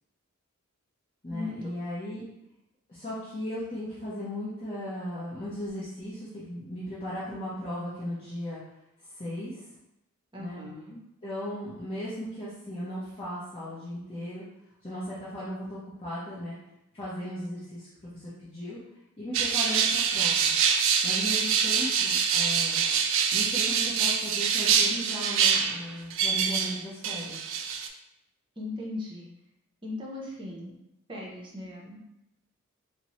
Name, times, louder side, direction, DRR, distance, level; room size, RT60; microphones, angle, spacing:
voice 1, 1.2-2.2 2.9-8.6 9.1-9.6 10.4-10.6 11.2-14.4 14.8-16.6 16.9-18.8 19.2-20.6 21.0-22.9 23.3-27.4, equal, 25° left, -11 dB, 0.8 m, -36 dB
voice 2, 10.3-11.0 28.6-29.3 29.8-30.7 31.1-32.0, left 2 dB, 25° right, -3 dB, 0.7 m, -38 dB
sound 1, 19.3-26.8 27.0-27.9, right 7 dB, 60° right, 0.3 m, -25 dB
4.1 x 2.1 x 2.9 m, 0.86 s
head